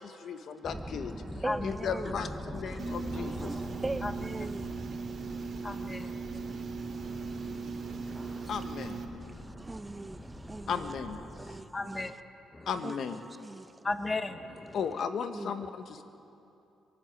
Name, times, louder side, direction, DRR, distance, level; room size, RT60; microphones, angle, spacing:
voice 1, 0.0-1.2 1.6-3.5 8.5-9.0 10.7-11.2 12.7-13.2 14.7-16.0, left 6 dB, 65° left, 1.3 m, -35 dB
sound 1, 0.6-11.6, equal, ahead, 1.4 m, -43 dB
voice 2, 1.4-2.3 2.7-3.0 3.4-4.8 5.6-5.7 6.3-8.6 9.3-12.2 12.8-13.9 15.3-15.5, right 2 dB, 20° right, 0.5 m, -43 dB
sound 2, 2.8-9.0, right 4 dB, 60° right, 2.5 m, -39 dB
voice 3, 5.2-6.6 7.0-8.5 11.7-12.1 12.5-12.7 13.8-14.8, left 2 dB, 25° left, 1.2 m, -37 dB
23.0 x 13.5 x 9.2 m
cardioid pair, 90°, 0 cm